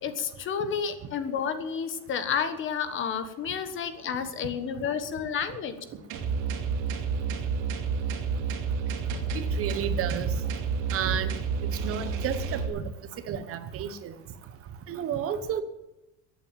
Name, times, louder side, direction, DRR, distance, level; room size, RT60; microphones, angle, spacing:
voice 1, 0.0-5.8, left 7 dB, 35° left, 10 dB, 1.4 m, -30 dB
sound 1, 6.1-12.7, right 5 dB, 65° right, 2.8 m, -30 dB
voice 2, 9.5-10.3 10.9-11.3 11.8-12.8 13.3-14.1 14.9-15.6, right 8 dB, 45° right, 11 dB, 1.1 m, -31 dB
14.5 x 8.6 x 9.0 m, 0.93 s
cardioid pair, 160°, 33 cm